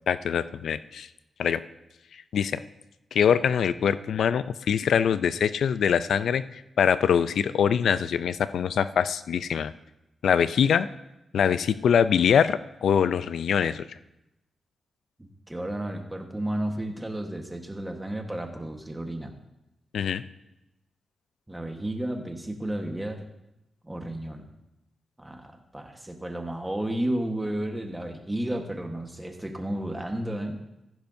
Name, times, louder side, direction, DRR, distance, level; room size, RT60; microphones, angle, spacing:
voice 1, 0.1-1.1 1.4-1.6 2.1-2.6 3.1-9.7 10.2-10.9 11.3-13.9 19.9-20.2, left 7 dB, 80° left, 14 dB, 0.4 m, -23 dB
voice 2, 15.2-19.3 21.5-23.3 23.8-24.5 25.2-30.6, right 1 dB, 10° right, 3 dB, 1.3 m, -32 dB
15.0 x 10.5 x 2.7 m, 0.91 s
wide cardioid pair, 120°, 0 cm